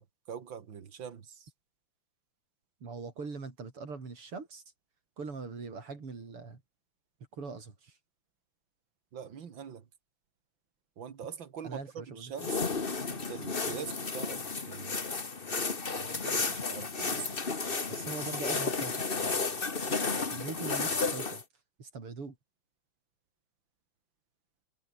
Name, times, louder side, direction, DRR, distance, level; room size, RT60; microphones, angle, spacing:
voice 1, 0.0-1.5 9.1-9.9 11.0-12.6 13.1-15.0 16.0-17.4, right 7 dB, 60° right, 2.6 m, -44 dB
voice 2, 2.8-4.6 5.2-6.6 7.3-8.0 11.6-12.3 17.9-19.4 20.3-21.4 21.8-22.4, right 4 dB, 80° right, 5.3 m, -42 dB
sound 1, 12.4-21.4, left 4 dB, 25° left, 1.7 m, -33 dB
omnidirectional pair, 2.4 m